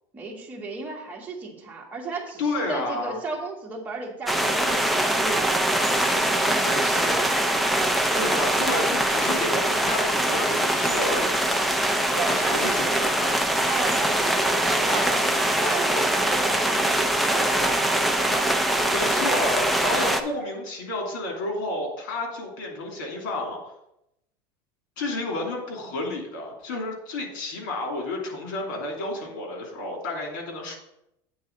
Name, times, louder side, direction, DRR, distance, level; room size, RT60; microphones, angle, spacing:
voice 1, 0.1-5.7 6.1-7.3 8.1-8.5 12.1-12.9 13.6-18.6, right 3 dB, 15° right, -2 dB, 1.7 m, -35 dB
voice 2, 2.4-3.2 6.6-7.2 8.1-11.6 12.3-13.4 18.8-23.6 25.0-30.8, left 2 dB, 90° left, 0 dB, 2.8 m, -31 dB
sound 1, 4.3-20.2, right 1 dB, ahead, 0.5 m, -23 dB
8.6 x 3.9 x 6.7 m, 0.83 s
supercardioid pair, 155°, 10 cm